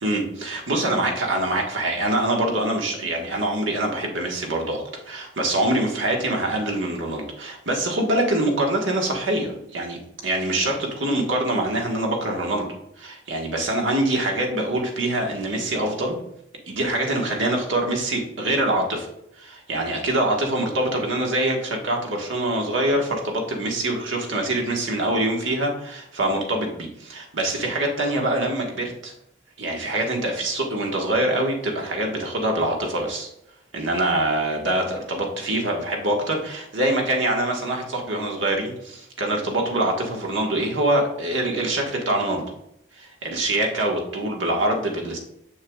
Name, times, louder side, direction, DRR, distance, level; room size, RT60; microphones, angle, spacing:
voice 1, 0.0-12.7 13.0-16.2 16.7-19.1 19.4-29.1 29.6-33.3 33.7-42.4 43.0-45.2, right 1 dB, 85° right, 0 dB, 1.4 m, -24 dB
6.7 x 6.6 x 2.3 m, 0.78 s
head